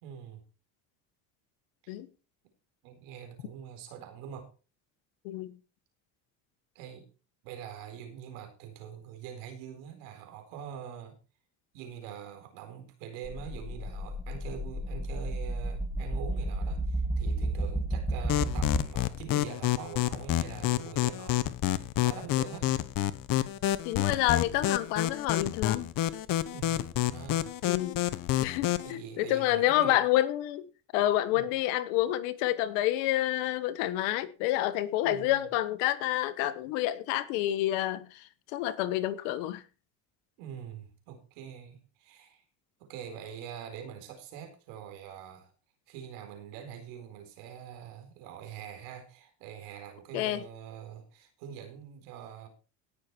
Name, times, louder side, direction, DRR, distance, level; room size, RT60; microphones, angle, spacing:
voice 1, 0.0-0.4 1.8-1.9 2.8-4.5 6.7-7.1 7.4-11.2 11.7-22.8 26.5-27.6 28.8-30.0 31.3-31.4 35.0-35.4 40.4-42.4 42.8-45.5 45.9-52.5, right 8 dB, 85° right, 4.2 m, -44 dB
voice 2, 5.2-5.6 23.8-25.9 27.7-28.0 28.4-30.6 30.9-39.6 50.1-50.4, left 14 dB, 85° left, 1.5 m, -28 dB
sound 1, 13.2-18.8, right 1 dB, 5° left, 2.8 m, -32 dB
sound 2, 18.3-28.9, left 14 dB, 60° left, 1.1 m, -29 dB
17.5 x 6.9 x 4.5 m
supercardioid pair, 90°, 38 cm